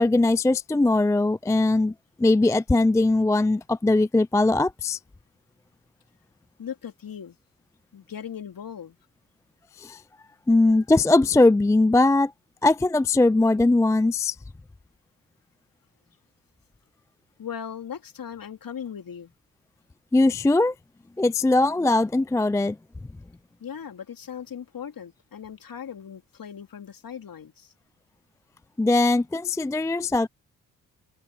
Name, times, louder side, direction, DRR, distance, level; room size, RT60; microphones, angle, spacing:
voice 1, 0.0-1.9 2.2-5.0 9.8-10.0 10.5-12.3 12.6-14.4 20.1-20.7 21.2-22.8 28.8-30.3, left 2 dB, 5° left, 0.4 m, -20 dB
voice 2, 6.6-7.4 7.9-9.0 17.4-19.3 23.6-27.7, left 8 dB, 50° left, 3.4 m, -38 dB
open air
hypercardioid pair, 40°, 42 cm